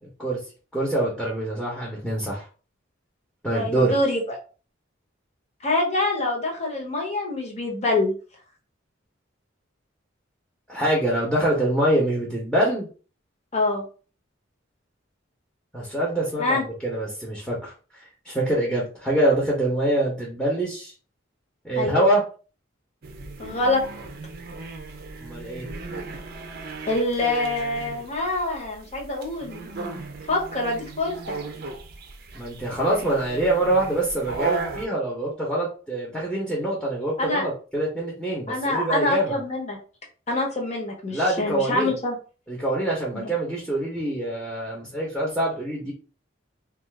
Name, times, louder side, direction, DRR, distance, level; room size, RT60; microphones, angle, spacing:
voice 1, 0.0-0.4 0.7-2.5 3.4-4.0 10.7-12.9 15.7-17.7 18.0-20.9 21.6-22.2 25.2-25.7 32.3-39.4 41.1-41.9 42.5-45.9, right 1 dB, ahead, -4 dB, 0.8 m, -25 dB
voice 2, 3.5-4.2 5.6-8.1 13.5-13.8 16.4-16.6 21.8-22.1 23.4-23.8 26.9-29.7 30.3-31.4 37.2-37.5 38.5-39.8 40.3-42.2 43.1-43.3, left 2 dB, 35° left, 1 dB, 0.9 m, -25 dB
sound 1, 23.0-34.9, right 3 dB, 50° right, 0.5 m, -36 dB
2.5 x 2.4 x 3.4 m, 0.37 s
head